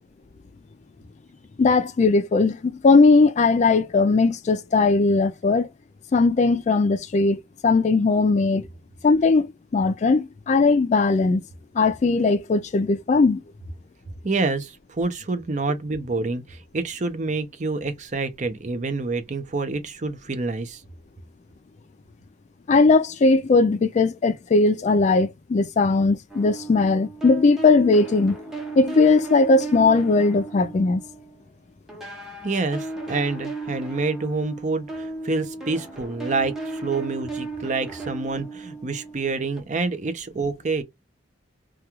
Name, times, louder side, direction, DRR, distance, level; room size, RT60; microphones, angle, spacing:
voice 1, 1.6-5.7 6.1-8.7 9.0-9.5 9.7-11.4 11.8-13.4 22.7-28.4 28.8-31.0, left 3 dB, 40° left, 0.3 m, -19 dB
voice 2, 14.2-20.8 32.4-40.8, right 3 dB, 40° right, 0.6 m, -27 dB
sound 1, 26.3-31.5 31.9-39.6, right 2 dB, 5° right, 0.8 m, -35 dB
2.3 x 2.3 x 2.8 m
head